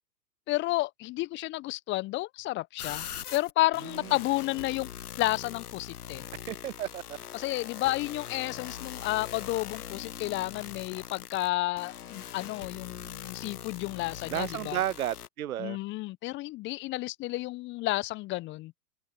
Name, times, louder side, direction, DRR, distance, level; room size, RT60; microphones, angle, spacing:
voice 1, 0.5-3.1 3.3-4.9 5.2-6.2 7.3-14.8 15.6-18.7, left 18 dB, 25° left, 1.1 m, -31 dB
sound 1, 2.8-15.3, left 10 dB, 65° left, 1.4 m, -42 dB
voice 2, 6.5-7.0 14.3-15.8, right 11 dB, 55° right, 1.0 m, -32 dB
figure-of-eight pair, 110°, 50 cm